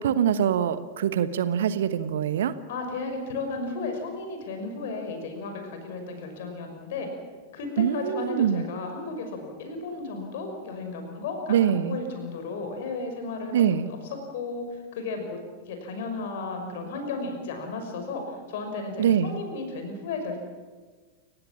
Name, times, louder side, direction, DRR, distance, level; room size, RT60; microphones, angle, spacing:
voice 1, 0.0-2.5 7.8-8.6 11.5-12.0 13.5-13.9 19.0-19.4, right 9 dB, 60° right, 13 dB, 1.2 m, -24 dB
voice 2, 2.7-7.1 7.5-14.0 14.3-20.4, left 3 dB, 55° left, 5 dB, 6.0 m, -34 dB
29.5 x 16.0 x 7.5 m, 1.4 s
figure-of-eight pair, 90°, 0 cm